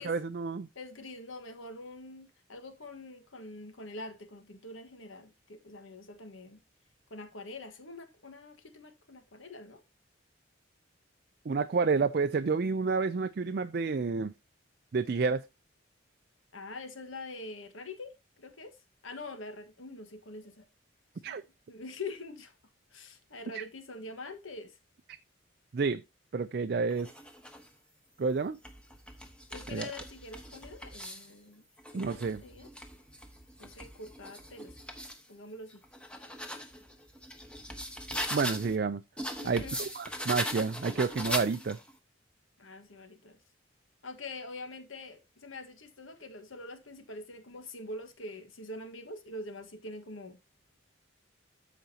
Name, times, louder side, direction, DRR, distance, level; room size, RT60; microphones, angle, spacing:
voice 1, 0.0-0.7 11.5-14.3 14.9-15.5 21.2-21.4 23.5-23.6 25.7-26.0 26.3-27.1 28.2-28.6 29.7-29.9 31.9-32.4 38.3-39.0 39.4-41.8, right 4 dB, 50° right, 0.4 m, -29 dB
voice 2, 0.7-6.6 7.1-9.8 16.5-18.8 19.0-20.6 21.2-21.4 21.7-22.5 22.9-24.8 29.5-31.6 31.9-32.7 33.6-34.7 35.3-35.8 39.4-39.9 42.6-43.4 44.0-50.4, left 2 dB, 80° left, 1.5 m, -45 dB
sound 1, 26.9-27.7 28.4-31.3 31.8-35.2 35.7-38.8 39.2-41.9, equal, 5° left, 1.1 m, -40 dB
13.5 x 5.1 x 2.8 m
head